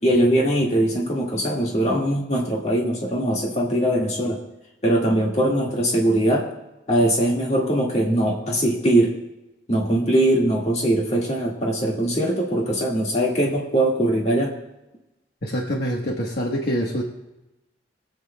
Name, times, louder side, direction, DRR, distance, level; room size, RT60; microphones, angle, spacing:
voice 1, 0.0-4.4 4.8-6.5 6.9-9.1 9.7-14.5, right 1 dB, 35° left, -1 dB, 1.8 m, -21 dB
voice 2, 15.4-17.0, equal, 55° left, -1 dB, 1.2 m, -25 dB
22.0 x 8.0 x 2.2 m, 0.98 s
head